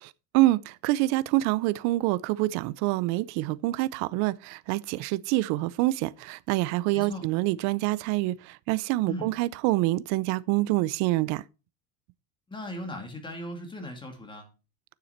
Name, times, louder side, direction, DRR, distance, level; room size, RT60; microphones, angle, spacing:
voice 1, 0.0-11.4, right 18 dB, 55° right, 0.6 m, -26 dB
voice 2, 12.5-14.5, left 1 dB, 15° left, 2.5 m, -38 dB
9.5 x 7.1 x 4.4 m
supercardioid pair, 130°, 33 cm